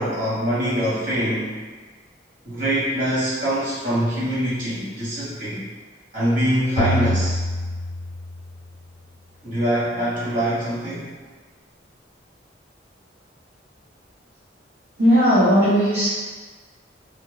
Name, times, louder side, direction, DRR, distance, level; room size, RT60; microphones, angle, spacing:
voice 1, 0.0-1.5 2.4-5.6 6.1-7.4 9.4-11.1, equal, 45° right, -11 dB, 1.5 m, -24 dB
sound 1, 6.8-8.7, equal, 85° left, 0.4 m, -25 dB
voice 2, 15.0-16.1, equal, 65° right, -12 dB, 0.9 m, -16 dB
3.4 x 2.4 x 3.1 m, 1.4 s
head